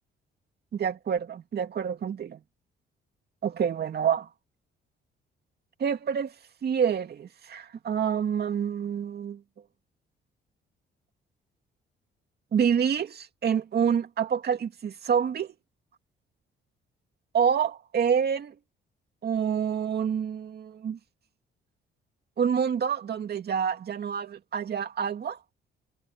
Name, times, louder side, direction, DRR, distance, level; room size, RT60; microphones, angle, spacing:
voice 1, 0.7-2.4 3.4-4.3 5.8-6.3 6.6-9.4 12.5-15.5 17.3-18.5 19.2-21.0 22.4-25.4, right 7 dB, 55° right, 2.4 m, -27 dB
cardioid pair, 90°, 20 cm